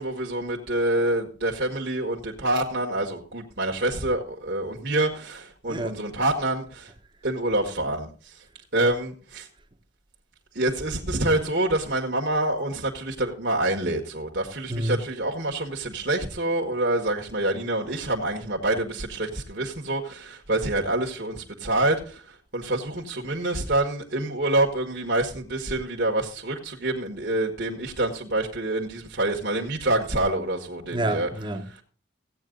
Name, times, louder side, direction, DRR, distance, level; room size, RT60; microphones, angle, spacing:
voice 1, 0.0-6.9 7.2-8.1 8.7-9.5 10.5-22.2 22.5-31.3, right 1 dB, 55° right, 1.6 m, -26 dB
voice 2, 14.7-15.0 30.9-31.8, right 1 dB, 25° right, 1.2 m, -28 dB
15.5 x 9.0 x 3.9 m
head